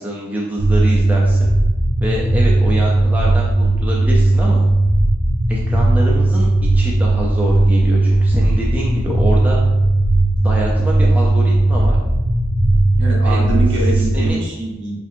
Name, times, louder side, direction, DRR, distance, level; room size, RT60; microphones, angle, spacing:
voice 1, 0.0-1.5 2.0-4.6 5.5-6.5 6.7-9.6 10.4-12.0 13.2-13.4 13.9-14.4, equal, 5° right, -4 dB, 0.3 m, -25 dB
sound 1, 0.6-14.3, right 2 dB, 85° right, 1.1 m, -16 dB
voice 2, 13.0-14.9, right 1 dB, 55° right, -4 dB, 1.0 m, -24 dB
5.3 x 2.5 x 2.5 m, 1.1 s
head